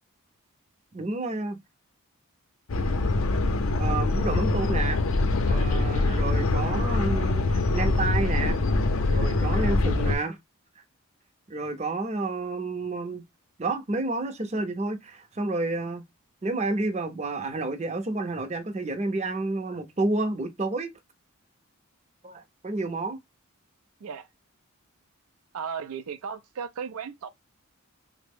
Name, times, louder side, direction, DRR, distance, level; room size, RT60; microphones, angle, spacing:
voice 1, 0.9-1.6 3.8-5.0 5.5-8.6 9.1-10.4 11.5-13.2 13.6-16.0 16.4-20.9 22.2-23.2, right 2 dB, 30° right, 0.5 m, -30 dB
sound 1, 2.7-10.2, left 2 dB, 65° left, 0.5 m, -24 dB
voice 2, 25.5-27.3, right 6 dB, 80° right, 0.4 m, -36 dB
3.5 x 2.0 x 3.5 m
head